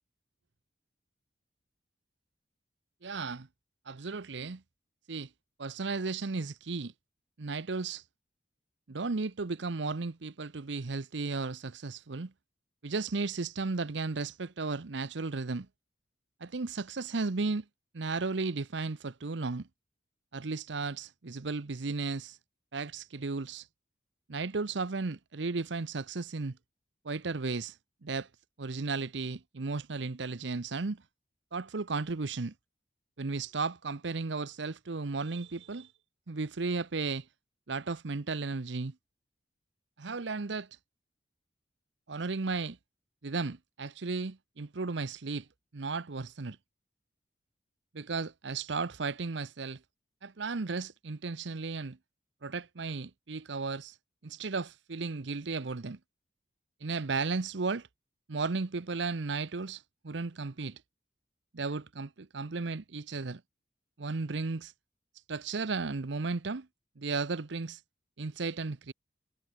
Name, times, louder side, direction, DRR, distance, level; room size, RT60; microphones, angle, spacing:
voice 1, 3.0-3.5 3.9-4.6 5.1-5.3 5.6-6.9 7.4-8.0 8.9-12.3 12.8-15.7 16.4-17.6 17.9-19.7 20.3-22.4 22.7-23.7 24.3-26.6 27.0-28.3 28.6-31.0 31.5-32.5 33.2-35.9 36.3-37.3 37.7-38.9 40.0-40.8 42.1-42.8 43.2-45.5 45.7-46.6 47.9-49.8 50.2-52.0 52.4-54.0 54.2-56.0 56.8-57.9 58.3-60.8 61.5-63.4 64.0-64.7 65.3-66.7 67.0-67.8 68.2-68.9, right 4 dB, 70° right, 0.8 m, -34 dB
head